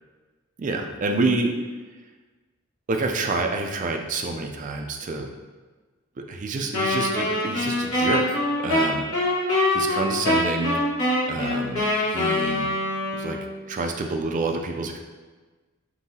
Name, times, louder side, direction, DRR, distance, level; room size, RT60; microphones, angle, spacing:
voice 1, 0.6-1.5 2.9-5.3 6.2-9.1 9.7-10.8 11.3-12.7 13.1-13.4 13.7-15.0, right 3 dB, 35° right, 3 dB, 0.4 m, -27 dB
Wind instrument woodwind instrument, 6.7-13.6, left 1 dB, 75° left, 1.4 m, -24 dB
5.4 x 2.7 x 2.7 m, 1.3 s
head